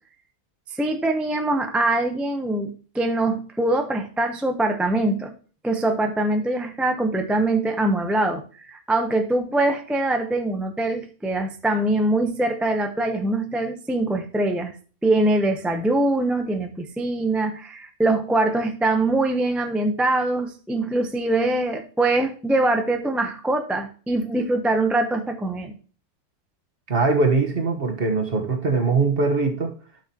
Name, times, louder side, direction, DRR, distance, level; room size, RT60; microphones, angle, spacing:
voice 1, 0.7-5.3 5.6-14.7 15.0-25.7, right 2 dB, ahead, 0.3 m, -23 dB
voice 2, 26.9-29.7, right 4 dB, 40° right, 1.3 m, -21 dB
12.0 x 6.0 x 2.9 m
omnidirectional pair, 1.6 m